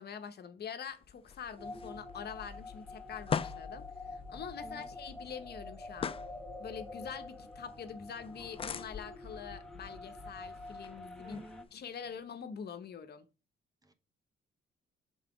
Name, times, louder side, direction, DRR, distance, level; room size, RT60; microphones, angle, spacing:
voice 1, 0.0-6.1 6.6-11.4 11.7-13.3, left 7 dB, 55° left, 0.8 m, -45 dB
sound 1, 0.9-12.2, left 7 dB, 30° left, 0.4 m, -44 dB
sound 2, 1.6-11.6, left 3 dB, 5° left, 1.0 m, -46 dB
voice 2, 11.2-11.7 13.8-13.9, right 1 dB, 20° right, 0.9 m, -53 dB
5.5 x 3.9 x 5.0 m
cardioid pair, 90°, 20 cm